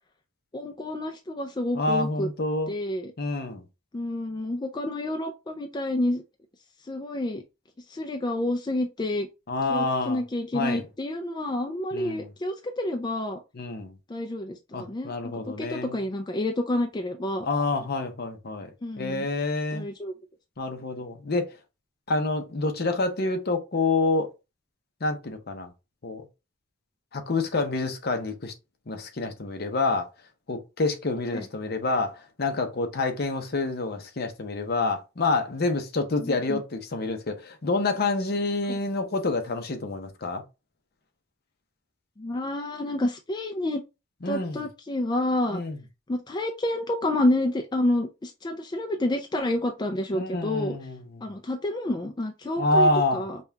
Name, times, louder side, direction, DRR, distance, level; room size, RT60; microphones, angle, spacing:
voice 1, 0.5-2.3 2.7-3.1 3.9-6.2 6.9-7.4 7.9-9.3 9.7-13.4 14.1-17.5 18.8-19.3 19.7-20.1 31.3-31.5 36.2-36.6 38.7-38.8 42.2-43.8 44.3-45.6 46.1-50.8 51.2-53.4, left 1 dB, 20° left, 0.4 m, -29 dB
voice 2, 1.7-2.7 3.2-3.6 9.5-10.2 10.5-10.8 11.9-12.3 13.5-13.9 14.7-16.0 17.4-18.7 19.0-19.9 20.6-21.6 22.1-24.3 25.0-25.7 26.0-26.2 27.1-28.5 28.9-30.1 30.5-40.4 44.2-44.6 45.5-45.8 50.1-51.3 52.6-53.3, left 3 dB, 55° left, 0.7 m, -27 dB
5.3 x 2.3 x 2.7 m
head